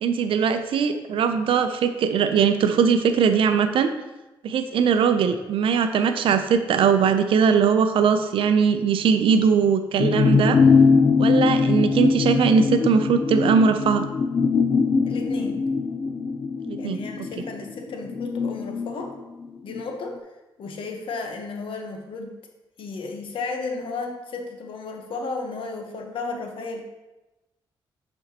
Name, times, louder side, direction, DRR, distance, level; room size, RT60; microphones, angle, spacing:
voice 1, 0.0-3.9 4.4-10.6 11.2-14.0 16.6-17.0, right 6 dB, 75° right, 9 dB, 0.5 m, -20 dB
sound 1, 10.0-19.8 20.2-20.3, left 5 dB, 35° left, 0.4 m, -21 dB
voice 2, 15.0-15.6 16.8-19.1 19.6-20.2 20.6-22.3 22.8-26.8, left 3 dB, 70° left, 3 dB, 1.0 m, -33 dB
8.3 x 4.4 x 2.9 m, 1.0 s
cardioid pair, 70°, 9 cm